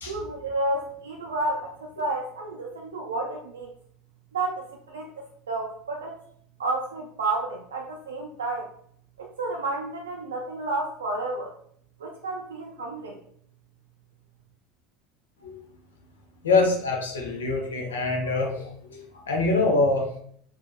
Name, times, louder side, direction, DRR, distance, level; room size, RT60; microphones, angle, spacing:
voice 1, 0.1-3.7 4.3-6.2 6.6-8.7 9.2-11.5 12.0-13.2, right 2 dB, 75° right, 1 dB, 0.4 m, -31 dB
voice 2, 16.4-20.0, left 3 dB, 75° left, 1 dB, 0.8 m, -24 dB
4.5 x 2.8 x 2.2 m, 0.64 s
figure-of-eight pair, 70°, 0 cm